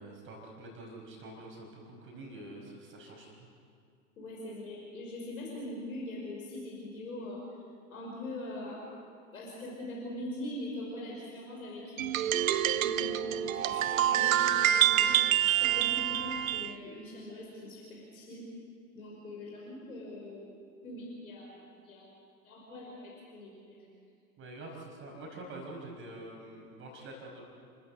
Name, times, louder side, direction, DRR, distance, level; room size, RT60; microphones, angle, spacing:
voice 1, 0.0-3.5 24.4-27.4, right 2 dB, 25° right, 0 dB, 5.1 m, -46 dB
voice 2, 4.2-7.6 7.9-8.8 9.3-18.5 18.9-20.5 20.8-22.1 22.4-23.8, left 1 dB, 65° left, -3 dB, 5.5 m, -42 dB
sound 1, 12.0-16.7, right 11 dB, 60° right, 0.8 m, -27 dB
29.5 x 14.5 x 8.0 m, 2.3 s
figure-of-eight pair, 95°, 45 cm